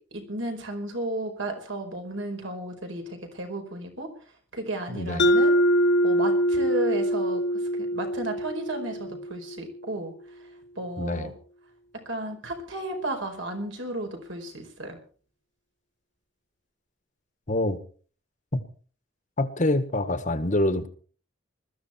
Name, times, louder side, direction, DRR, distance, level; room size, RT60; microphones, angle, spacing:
voice 1, 0.1-4.1 4.5-5.5 6.0-10.1 10.7-11.3 12.0-15.0, right 1 dB, 70° right, 4 dB, 4.9 m, -33 dB
voice 2, 4.9-5.3 11.0-11.3 17.5-17.8 18.5-18.6 19.4-20.9, left 1 dB, 40° left, 11 dB, 1.6 m, -26 dB
Mallet percussion, 5.2-9.8, equal, 60° left, 1.0 m, -24 dB
21.0 x 14.0 x 4.4 m, 0.43 s
head